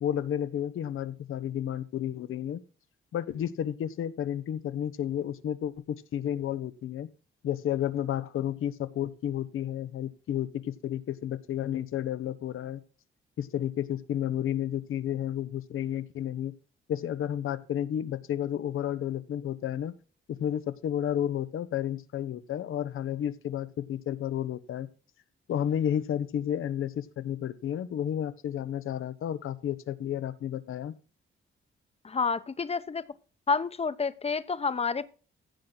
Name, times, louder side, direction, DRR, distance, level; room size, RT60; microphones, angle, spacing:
voice 1, 0.0-2.6 3.1-7.1 7.4-12.8 13.4-16.5 16.9-20.0 20.3-24.9 25.5-30.9, left 10 dB, 85° left, 1.1 m, -31 dB
voice 2, 32.0-33.0 33.5-35.1, left 5 dB, 30° left, 0.9 m, -29 dB
15.5 x 6.1 x 4.0 m
cardioid pair, 105°, 21 cm